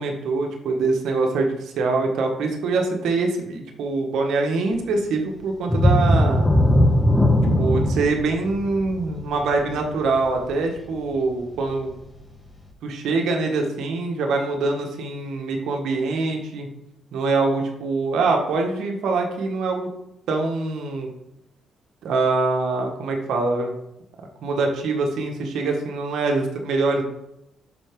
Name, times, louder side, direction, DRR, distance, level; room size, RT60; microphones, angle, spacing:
voice 1, 0.0-6.5 7.6-11.9 12.8-16.7 17.1-19.9 20.3-21.1 22.0-23.7 24.4-27.0, right 3 dB, 75° right, 2 dB, 1.5 m, -24 dB
sound 1, 5.7-11.1 11.6-11.7 12.2-12.3, left 1 dB, 10° left, 1.3 m, -19 dB
11.5 x 4.3 x 3.7 m, 0.85 s
cardioid pair, 90°, 0 cm